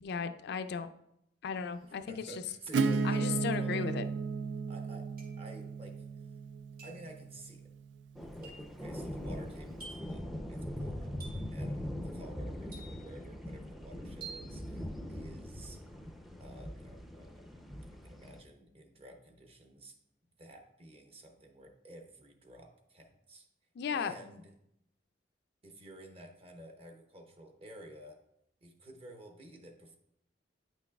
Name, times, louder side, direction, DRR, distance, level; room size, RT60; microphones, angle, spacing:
voice 1, 0.0-0.9 1.4-2.3 3.0-4.1 23.8-24.1, left 6 dB, 65° left, 9 dB, 0.4 m, -35 dB
sound 1, 1.7-1.8 2.9-3.5 5.2-5.5 6.8-7.1 8.4-8.8 9.8-10.2 11.2-11.6 12.7-13.2 14.2-14.5, right 4 dB, 55° right, 2.2 m, -50 dB
voice 2, 2.1-4.1 4.7-5.1 5.4-6.3 6.8-7.7 8.2-15.8 16.4-20.0 20.4-23.5 23.9-24.5 25.6-28.2 28.6-30.0, right 1 dB, 35° right, 4 dB, 0.9 m, -52 dB
Acoustic guitar / Strum, 2.7-8.2, right 4 dB, 75° right, 0.3 m, -34 dB
sound 2, 8.2-18.4, equal, ahead, 0.5 m, -42 dB
9.0 x 6.0 x 2.3 m, 0.77 s
head